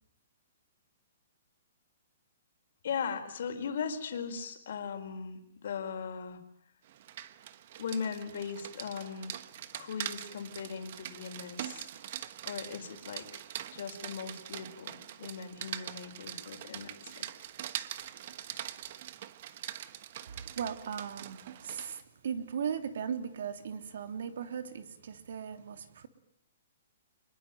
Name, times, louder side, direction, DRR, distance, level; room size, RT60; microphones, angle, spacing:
voice 1, 2.8-6.4 7.8-9.3 9.7-12.2 12.5-13.4 13.7-17.3, left 6 dB, 60° left, 6 dB, 4.5 m, -39 dB
Rain, 6.9-22.0, right 12 dB, 45° right, 1.2 m, -43 dB
voice 2, 20.3-26.1, right 7 dB, 65° right, 9 dB, 3.1 m, -38 dB
25.5 x 21.5 x 9.2 m, 0.70 s
hypercardioid pair, 165°, 0 cm